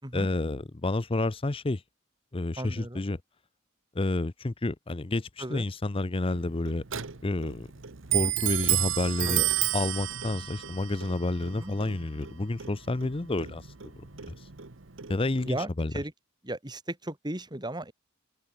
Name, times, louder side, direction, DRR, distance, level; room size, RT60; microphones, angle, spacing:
voice 1, 0.1-1.8 2.3-3.2 3.9-6.8 7.2-7.7 8.1-9.4 9.7-13.7 15.1-15.9, left 2 dB, 25° left, 0.6 m, -29 dB
voice 2, 2.6-3.0 5.4-5.7 9.2-9.5 11.5-11.7 15.4-16.1 16.4-17.9, right 1 dB, 20° right, 3.0 m, -36 dB
Clock, 6.3-15.6, right 13 dB, 65° right, 1.2 m, -32 dB
open air
head